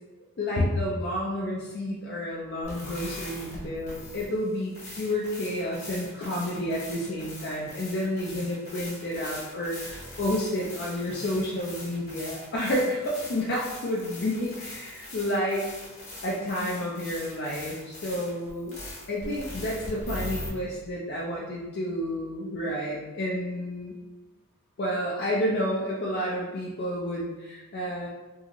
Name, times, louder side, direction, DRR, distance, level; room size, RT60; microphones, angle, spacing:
voice 1, 0.4-15.6 16.2-18.8 19.1-23.9 24.8-28.1, left 1 dB, 50° left, -4 dB, 0.4 m, -30 dB
sound 1, 2.6-20.5, left 1 dB, 35° left, 0.8 m, -41 dB
2.7 x 2.4 x 2.9 m, 1.1 s
head